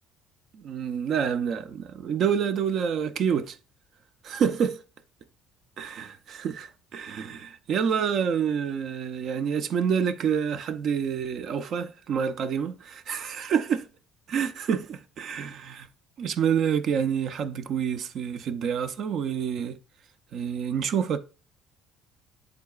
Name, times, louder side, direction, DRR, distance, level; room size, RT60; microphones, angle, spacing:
voice 1, 0.5-3.6 4.2-4.8 5.8-13.9 14.3-15.9 16.2-19.8 20.3-21.2, right 7 dB, 60° right, 0.6 m, -28 dB
11.5 x 3.9 x 2.3 m
hypercardioid pair, 60°, 0 cm